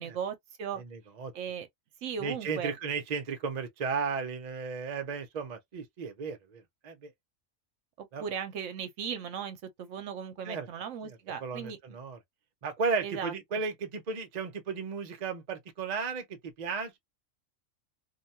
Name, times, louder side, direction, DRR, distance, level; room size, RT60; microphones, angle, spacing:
voice 1, 0.0-0.8 1.3-1.7 2.0-2.7 8.0-11.8 13.0-13.3, right 7 dB, 70° right, 0.9 m, -37 dB
voice 2, 0.8-1.3 2.2-7.1 8.1-8.2 10.4-10.7 11.0-12.2 12.6-17.0, right 5 dB, 45° right, 0.6 m, -35 dB
2.7 x 2.2 x 2.7 m
omnidirectional pair, 1.4 m